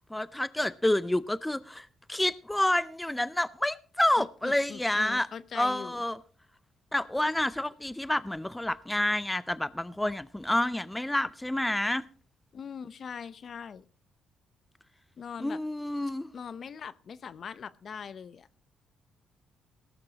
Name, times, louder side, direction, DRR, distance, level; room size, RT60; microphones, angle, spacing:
voice 1, 0.1-5.3 5.5-6.2 6.9-12.0 15.4-16.3, left 1 dB, 10° left, 0.5 m, -29 dB
voice 2, 4.2-6.0 12.5-13.8 15.2-15.6 16.3-18.5, left 6 dB, 50° left, 0.7 m, -41 dB
18.0 x 14.0 x 2.9 m
cardioid pair, 90°, 0 cm